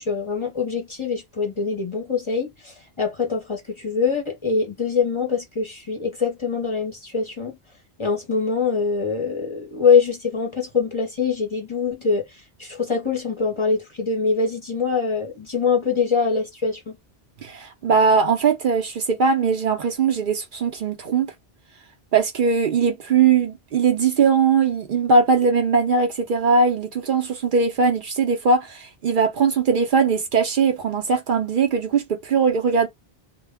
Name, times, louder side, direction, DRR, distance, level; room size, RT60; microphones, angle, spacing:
voice 1, 0.0-7.5 8.0-16.9, left 5 dB, 35° left, 0.6 m, -24 dB
voice 2, 17.4-21.3 22.1-32.9, right 5 dB, 60° right, 0.7 m, -20 dB
2.1 x 2.0 x 3.4 m
omnidirectional pair, 1.0 m